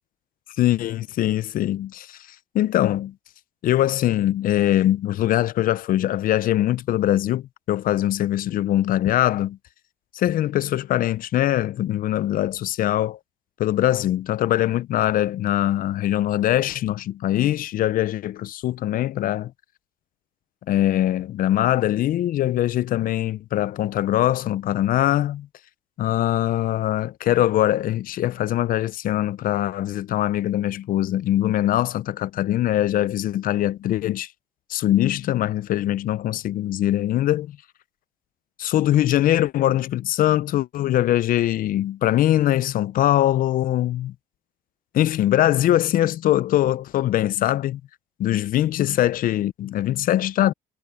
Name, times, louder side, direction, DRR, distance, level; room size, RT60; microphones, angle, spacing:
voice 1, 0.6-2.2 2.5-3.1 3.6-9.6 10.1-13.2 13.6-19.5 20.7-25.5 26.0-34.3 34.7-37.6 38.6-44.1 44.9-47.8 48.2-50.5, left 13 dB, 55° left, 0.5 m, -22 dB
cardioid pair, 110°, 17 cm